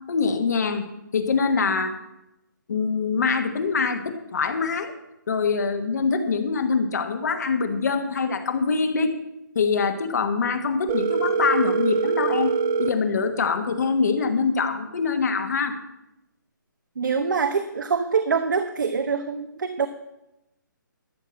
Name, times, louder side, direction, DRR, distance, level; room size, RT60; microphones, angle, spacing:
voice 1, 0.1-0.8 1.1-1.9 2.7-4.9 5.3-9.2 9.5-12.5 12.8-15.8, left 5 dB, 55° left, 6 dB, 1.3 m, -24 dB
Telephone, 10.9-12.9, right 6 dB, 10° right, 0.3 m, -23 dB
voice 2, 17.0-19.9, right 5 dB, 65° right, 8 dB, 0.9 m, -24 dB
13.0 x 5.6 x 7.4 m, 0.90 s
hypercardioid pair, 165°, 11 cm